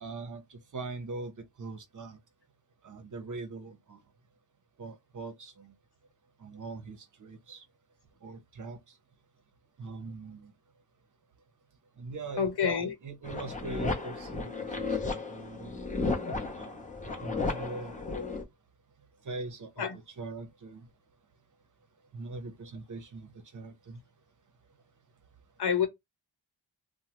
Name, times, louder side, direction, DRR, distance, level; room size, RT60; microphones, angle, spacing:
voice 1, 0.0-1.3 1.6-2.2 2.8-4.0 4.8-5.7 6.4-7.6 8.2-8.8 9.8-10.5 12.0-12.7 13.0-15.8 16.5-16.9 17.2-18.0 19.2-19.9 20.2-20.9 22.1-24.0, right 3 dB, 45° right, 0.6 m, -42 dB
voice 2, 12.4-12.9 17.1-17.3 18.1-18.4 19.8-20.0 25.6-25.9, left 7 dB, 60° left, 1.0 m, -29 dB
sound 1, 13.2-18.4, left 3 dB, 15° left, 0.7 m, -34 dB
2.9 x 2.0 x 2.9 m
wide cardioid pair, 95°, 44 cm